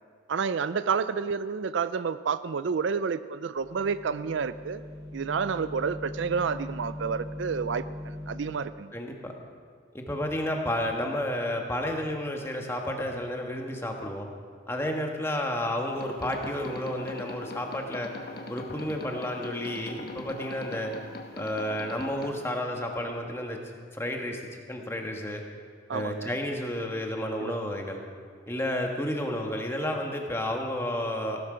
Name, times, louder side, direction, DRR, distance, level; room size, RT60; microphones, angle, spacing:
voice 1, 0.3-4.8 5.1-8.9 25.9-26.4 27.4-27.5, right 5 dB, 65° right, 14 dB, 0.4 m, -30 dB
sound 1, 3.6-8.5, left 1 dB, 20° right, 2.9 m, -40 dB
voice 2, 8.9-9.3 9.9-14.3 14.7-18.1 18.5-20.9 21.4-23.6 23.9-25.4 25.9-28.0 28.5-31.4, left 1 dB, 10° left, 2 dB, 1.4 m, -31 dB
sound 2, 15.8-22.3, left 2 dB, 50° left, 1.2 m, -42 dB
17.0 x 12.5 x 5.0 m, 2.1 s
head